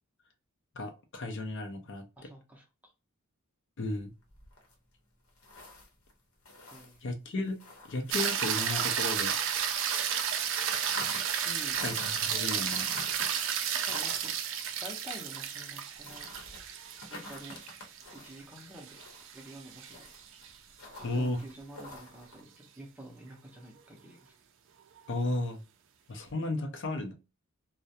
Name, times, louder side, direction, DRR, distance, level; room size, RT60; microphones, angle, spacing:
voice 1, 0.8-2.0 3.8-4.1 7.0-7.6 7.9-9.3 11.8-12.9 21.0-21.4 25.1-25.6 26.1-27.1, left 2 dB, 55° left, 5 dB, 0.5 m, -34 dB
voice 2, 2.2-2.9 6.7-7.1 11.4-11.8 13.9-14.3 14.8-16.4 17.1-17.6 18.1-19.0 19.3-20.1 21.0-24.3, equal, 5° right, 1 dB, 0.5 m, -49 dB
sound 1, 3.9-9.9 10.1-22.4, left 2 dB, 75° left, 0.8 m, -49 dB
sound 2, 8.1-20.5 25.0-25.1, right 8 dB, 60° right, 0.4 m, -32 dB
2.3 x 2.1 x 2.7 m, 0.29 s
head